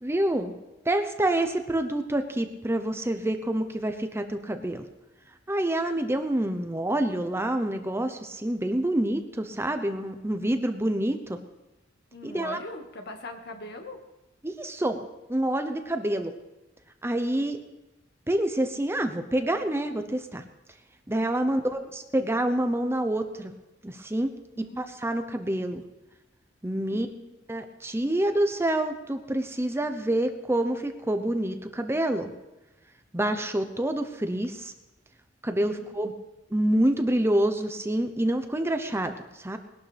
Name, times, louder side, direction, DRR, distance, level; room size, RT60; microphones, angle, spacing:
voice 1, 0.0-0.5 0.9-4.9 5.5-11.4 12.2-12.6 14.4-15.0 15.3-16.3 17.0-17.6 18.3-20.4 21.1-23.5 23.8-24.3 24.8-25.8 26.6-27.1 27.5-32.3 33.1-34.7 35.4-36.1 36.5-39.6, right 1 dB, 15° right, 7 dB, 0.8 m, -27 dB
voice 2, 12.1-14.0 17.2-17.5 21.4-21.9 24.5-24.9 26.9-27.3 35.7-36.2, left 2 dB, 60° left, 4 dB, 1.8 m, -42 dB
20.0 x 12.0 x 3.4 m, 1.0 s
head